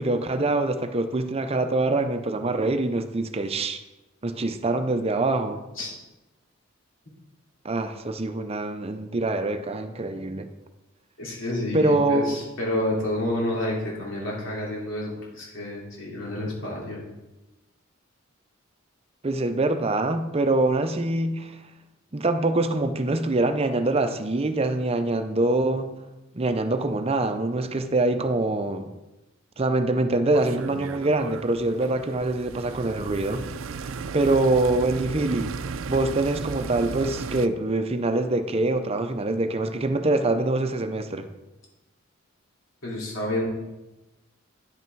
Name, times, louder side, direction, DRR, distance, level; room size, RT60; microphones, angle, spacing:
voice 1, 0.0-3.8 4.2-5.6 7.6-10.5 11.7-12.4 19.2-21.6 22.1-25.9 26.3-28.9 29.6-33.4 34.1-35.5 35.9-41.3, right 2 dB, 30° right, 0.6 m, -24 dB
voice 2, 11.2-17.0 42.8-43.5, left 1 dB, 75° left, 3.1 m, -29 dB
sound 1, 30.3-37.5, right 4 dB, 85° right, 0.4 m, -35 dB
9.8 x 5.8 x 4.6 m
head